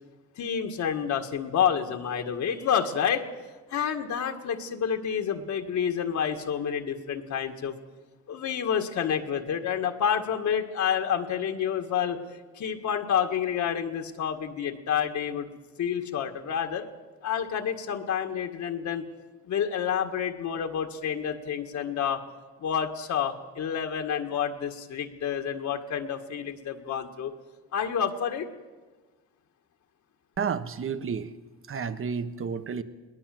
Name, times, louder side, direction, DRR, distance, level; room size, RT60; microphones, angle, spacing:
voice 1, 0.4-3.3 3.7-7.8 8.3-12.2 12.6-15.5 15.8-16.9 17.2-19.0 19.5-22.2 22.6-27.3 27.7-28.5, left 8 dB, 70° left, 4 dB, 1.9 m, -29 dB
voice 2, 30.4-31.3 31.7-32.8, right 6 dB, 45° right, 11 dB, 1.4 m, -31 dB
21.5 x 19.0 x 7.8 m, 1.3 s
cardioid pair, 90°, 30 cm